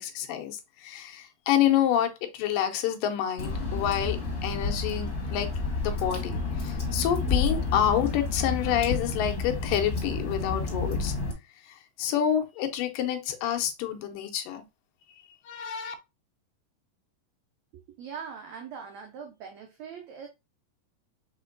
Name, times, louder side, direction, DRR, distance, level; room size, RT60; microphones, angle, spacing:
voice 1, 0.0-11.1 11.7-14.6 15.5-16.0, left 10 dB, 80° left, 2.3 m, -28 dB
Water / Drip, 3.4-11.3, left 3 dB, 40° left, 1.3 m, -30 dB
voice 2, 17.7-20.3, right 6 dB, 85° right, 1.5 m, -41 dB
5.1 x 4.2 x 2.5 m
omnidirectional pair, 4.0 m